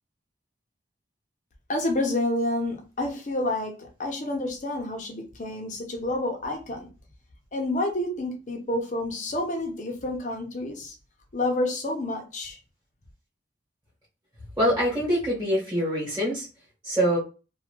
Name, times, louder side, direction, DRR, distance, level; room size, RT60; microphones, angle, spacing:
voice 1, 1.7-6.9 7.5-11.0 11.3-12.6, left 1 dB, 40° left, 2 dB, 0.7 m, -29 dB
voice 2, 14.6-16.5 16.8-17.2, equal, 10° right, -8 dB, 1.3 m, -24 dB
2.7 x 2.4 x 3.0 m, 0.33 s
head